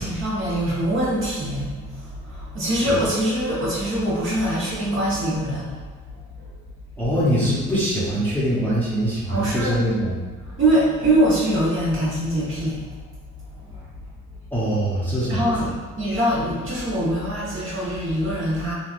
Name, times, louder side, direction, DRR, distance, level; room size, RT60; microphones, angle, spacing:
voice 1, 0.0-5.8 6.4-6.5 9.3-9.8 10.4-12.9 13.5-13.8 15.3-18.7, right 1 dB, 45° right, -8 dB, 1.3 m, -23 dB
voice 2, 7.0-10.1 10.5-10.6 14.5-15.7, equal, 5° left, -10 dB, 1.0 m, -23 dB
3.2 x 2.3 x 2.5 m, 1.4 s
cardioid pair, 90°, 30 cm